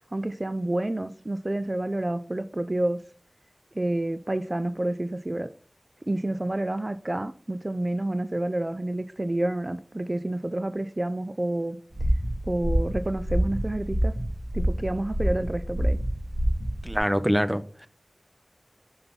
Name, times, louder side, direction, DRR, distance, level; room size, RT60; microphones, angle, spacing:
voice 1, 0.1-3.0 3.7-5.5 6.0-11.8 12.5-14.1 14.5-16.0, right 1 dB, 40° right, 0.4 m, -29 dB
sound 1, 11.9-17.0, equal, 60° right, 3.1 m, -27 dB
voice 2, 16.8-17.9, equal, 10° right, 0.8 m, -25 dB
5.9 x 5.6 x 5.3 m
wide cardioid pair, 55°, 0 cm